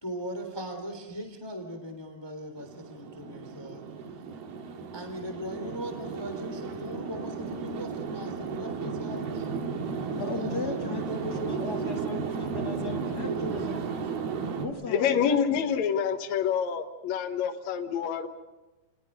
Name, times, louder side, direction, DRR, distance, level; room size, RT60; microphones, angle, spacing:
voice 1, 0.0-3.8 4.9-11.6 13.1-14.0, equal, 5° left, 6 dB, 2.1 m, -40 dB
sound 1, 2.6-14.7, right 5 dB, 65° right, 3.5 m, -34 dB
sound 2, 5.5-9.2 10.6-14.3 15.1-16.4, left 1 dB, 45° right, 5.8 m, -48 dB
voice 2, 10.1-13.8 14.6-15.4, left 2 dB, 40° left, 2 dB, 1.4 m, -36 dB
voice 3, 14.9-18.3, left 7 dB, 65° left, 5 dB, 1.8 m, -27 dB
29.5 x 20.5 x 5.5 m, 1.1 s
omnidirectional pair, 4.8 m